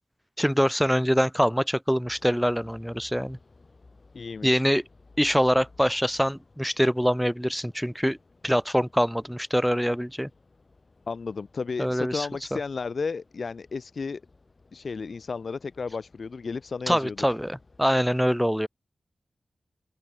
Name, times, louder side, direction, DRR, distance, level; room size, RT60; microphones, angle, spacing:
voice 1, 0.4-3.4 4.4-4.8 5.2-8.2 8.4-10.3 11.8-12.3 16.9-18.7, equal, ahead, 0.6 m, -24 dB
sound 1, 2.0-17.9, left 3 dB, 50° left, 5.2 m, -57 dB
voice 2, 4.1-4.6 11.1-14.2 14.7-17.2, left 4 dB, 70° left, 0.5 m, -33 dB
open air
cardioid pair, 40°, 0 cm